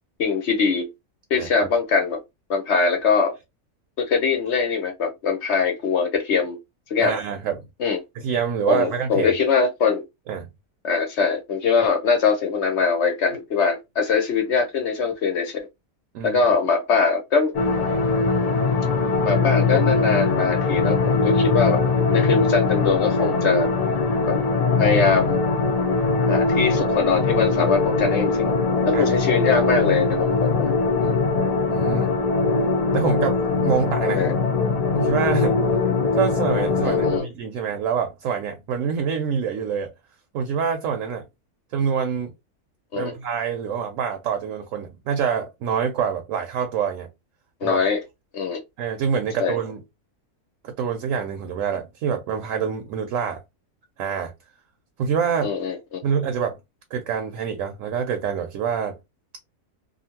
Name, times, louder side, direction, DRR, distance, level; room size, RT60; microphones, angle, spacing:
voice 1, 0.2-0.9 1.3-2.2 2.5-3.3 4.0-6.6 6.9-7.2 7.8-8.0 8.7-10.0 10.8-15.6 16.2-17.5 19.2-21.8 22.1-23.7 24.3-24.4 24.8-25.4 26.3-28.6 28.9-31.2 34.2-34.3 36.8-37.3 42.9-43.1 47.6-48.0 48.3-48.6 49.4-49.6 55.4-56.0, left 5 dB, 60° left, 0.8 m, -22 dB
voice 2, 7.0-7.6 8.2-9.3 10.3-10.5 16.1-16.4 28.9-29.0 31.7-32.2 32.9-34.2 34.9-35.6 36.1-39.9 40.3-41.3 41.7-42.3 42.9-47.1 47.6-47.8 48.8-49.8 50.6-53.4 54.0-54.3 55.0-55.5 56.0-56.6 56.9-59.0, right 7 dB, 65° right, 0.9 m, -26 dB
sound 1, 17.5-37.2, left 4 dB, 75° left, 0.3 m, -21 dB
2.6 x 2.5 x 2.7 m
omnidirectional pair, 1.6 m